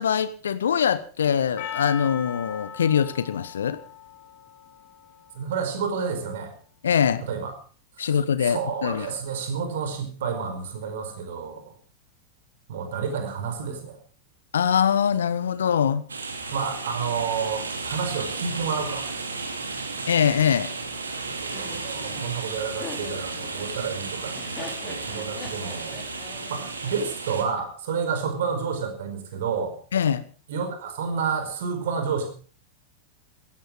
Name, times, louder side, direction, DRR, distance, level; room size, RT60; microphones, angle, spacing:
voice 1, 0.0-3.8 6.8-7.2 8.0-9.1 14.5-16.1 20.1-20.7 29.9-30.3, left 8 dB, 65° left, 15 dB, 1.1 m, -23 dB
Percussion, 1.6-6.1, left 8 dB, 45° left, 2.8 m, -40 dB
voice 2, 5.3-6.5 7.2-7.5 8.0-8.1 8.4-11.6 12.7-14.0 16.5-19.1 21.3-26.0 26.5-29.7 30.5-32.3, right 6 dB, 55° right, 7 dB, 5.0 m, -30 dB
sound 1, 16.1-27.4, right 3 dB, 75° right, 2.8 m, -34 dB
Laughter, 21.5-27.6, left 6 dB, 25° left, 4.3 m, -43 dB
17.5 x 15.0 x 5.1 m, 0.40 s
figure-of-eight pair, 90°, 0 cm